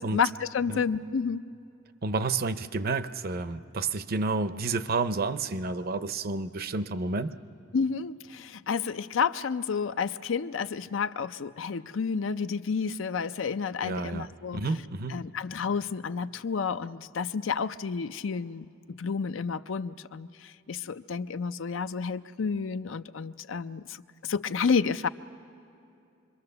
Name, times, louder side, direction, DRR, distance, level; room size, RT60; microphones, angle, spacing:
voice 1, 0.0-1.4 7.7-14.7 15.1-25.1, left 5 dB, 75° left, 12 dB, 0.5 m, -30 dB
voice 2, 2.0-7.3 13.8-15.2, right 3 dB, 50° right, 12 dB, 0.6 m, -30 dB
27.0 x 22.5 x 6.8 m, 2.6 s
head